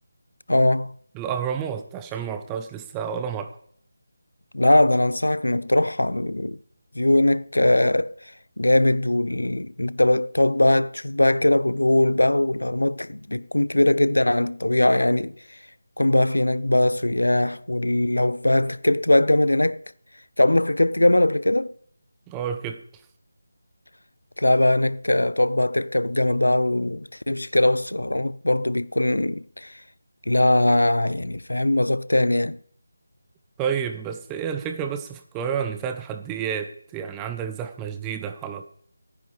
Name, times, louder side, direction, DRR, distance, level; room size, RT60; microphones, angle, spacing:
voice 1, 0.5-0.9 4.5-6.6 7.0-8.1 8.6-15.3 16.0-19.8 20.4-21.7 24.4-29.7 30.3-32.6, left 1 dB, 85° left, 0.5 m, -21 dB
voice 2, 1.1-3.5 22.3-22.8 33.6-38.6, right 7 dB, 10° right, 0.8 m, -30 dB
25.0 x 9.8 x 3.3 m
figure-of-eight pair, 165°, 0 cm